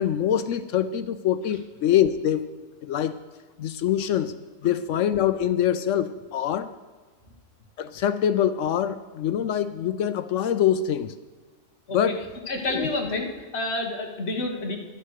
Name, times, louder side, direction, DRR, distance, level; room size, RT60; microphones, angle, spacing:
voice 1, 0.0-2.5 2.8-3.2 3.6-4.3 4.6-6.7 7.8-11.1 11.9-12.2 12.7-12.9, left 10 dB, 70° left, 13 dB, 0.9 m, -24 dB
voice 2, 12.5-14.8, left 2 dB, 50° left, 2 dB, 1.7 m, -29 dB
11.0 x 8.3 x 6.4 m, 1.3 s
omnidirectional pair, 1.4 m